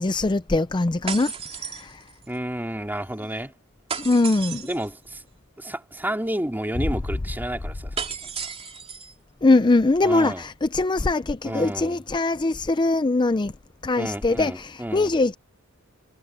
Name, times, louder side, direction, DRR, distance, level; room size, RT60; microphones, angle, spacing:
voice 1, 0.0-1.3 1.6-1.9 4.0-4.6 9.4-13.5 13.8-15.4, left 2 dB, 20° left, 0.5 m, -22 dB
sound 1, 1.1-2.4 3.9-4.9 8.0-9.1, right 6 dB, 30° right, 3.3 m, -33 dB
voice 2, 2.3-3.5 4.6-5.2 5.6-7.9 8.2-8.5 10.0-10.4 11.4-12.0 14.0-15.1, right 1 dB, 10° right, 3.1 m, -31 dB
head